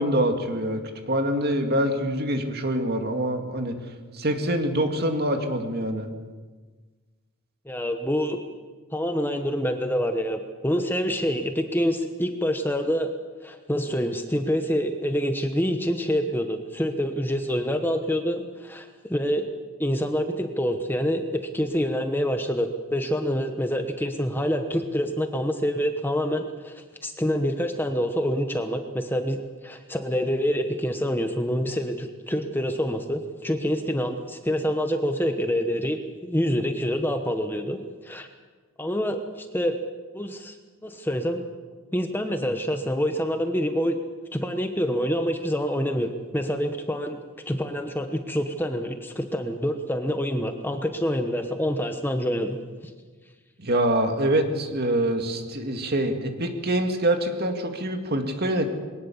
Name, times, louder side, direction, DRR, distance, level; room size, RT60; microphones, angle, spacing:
voice 1, 0.0-3.7 4.1-6.1 53.6-58.7, right 1 dB, 45° right, 5 dB, 2.2 m, -25 dB
voice 2, 7.7-8.4 8.9-13.1 13.4-19.5 19.8-38.3 38.8-39.8 40.1-40.6 40.8-41.4 41.9-44.0 44.3-47.2 47.5-52.6, equal, 10° left, 6 dB, 1.1 m, -26 dB
21.5 x 19.0 x 7.2 m, 1.4 s
head